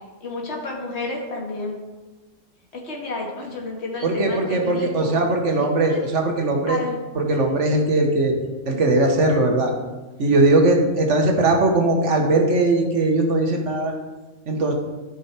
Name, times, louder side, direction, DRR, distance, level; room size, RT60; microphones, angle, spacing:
voice 1, 0.2-1.8 2.7-5.1 5.8-6.0 6.7-7.0, left 2 dB, 60° left, -2 dB, 2.1 m, -31 dB
voice 2, 4.0-6.8 7.1-8.3 8.6-9.7 10.2-13.9 14.5-14.7, right 2 dB, 70° right, 2 dB, 1.6 m, -19 dB
13.5 x 5.4 x 4.3 m, 1.2 s
omnidirectional pair, 1.3 m